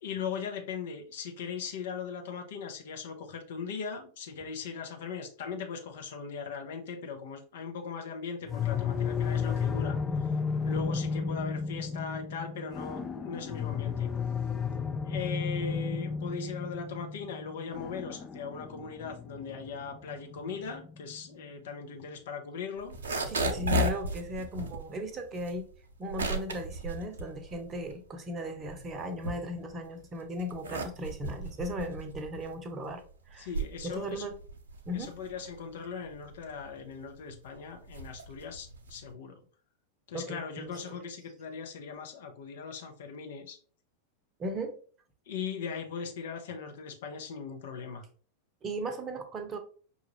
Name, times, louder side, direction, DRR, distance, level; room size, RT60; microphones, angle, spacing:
voice 1, 0.0-10.0 10.6-14.1 15.0-22.9 33.4-34.3 34.9-39.4 40.1-43.6 45.3-48.1, left 6 dB, 55° left, 3 dB, 0.9 m, -39 dB
sound 1, 8.5-21.3, left 6 dB, 15° left, 0.4 m, -33 dB
sound 2, 22.8-28.1 28.4-29.9 30.3-39.1, right 1 dB, 65° right, 0.6 m, -35 dB
voice 2, 23.3-25.7 26.0-33.0 33.3-33.5 33.8-34.4 34.9-35.1 40.1-41.0 44.4-44.7 48.6-49.6, equal, 25° right, 7 dB, 0.8 m, -37 dB
5.5 x 2.5 x 3.1 m, 0.43 s
figure-of-eight pair, 90°, 0 cm